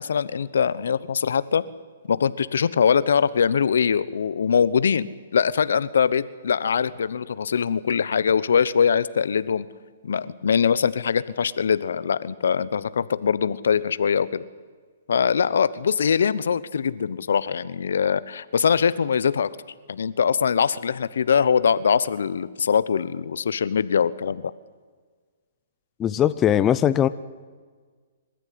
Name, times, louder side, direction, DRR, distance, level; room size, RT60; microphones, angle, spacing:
voice 1, 0.0-1.6 2.1-9.7 10.0-14.4 15.1-19.5 19.9-24.5, left 7 dB, 75° left, 17 dB, 1.0 m, -22 dB
voice 2, 26.0-27.1, left 10 dB, 20° left, 13 dB, 0.6 m, -20 dB
26.0 x 14.0 x 9.6 m, 1.5 s
hypercardioid pair, 150°, 0 cm